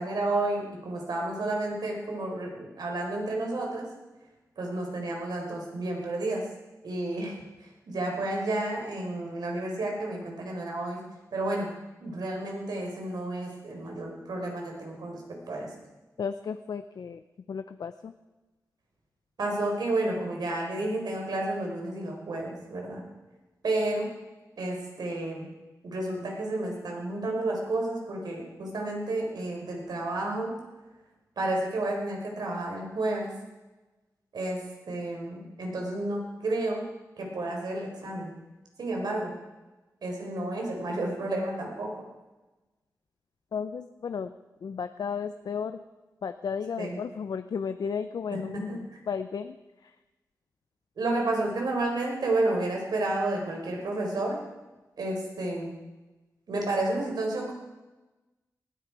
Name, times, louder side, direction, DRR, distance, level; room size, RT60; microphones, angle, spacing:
voice 1, 0.0-3.9 4.6-6.5 6.8-11.0 11.3-11.7 12.0-15.7 19.4-23.0 23.6-24.1 24.6-25.5 25.8-30.6 31.4-33.3 34.3-36.8 37.2-38.3 38.8-39.3 40.0-42.1 46.8-47.0 48.3-49.0 51.0-54.4 55.0-55.7 56.5-57.5, right 2 dB, 85° right, 0 dB, 4.5 m, -31 dB
voice 2, 16.2-17.2 17.5-18.1 43.5-44.3 44.6-45.8 46.2-49.5, left 6 dB, 75° left, 10 dB, 0.6 m, -34 dB
19.5 x 13.5 x 4.8 m, 1.1 s
wide cardioid pair, 110°, 7 cm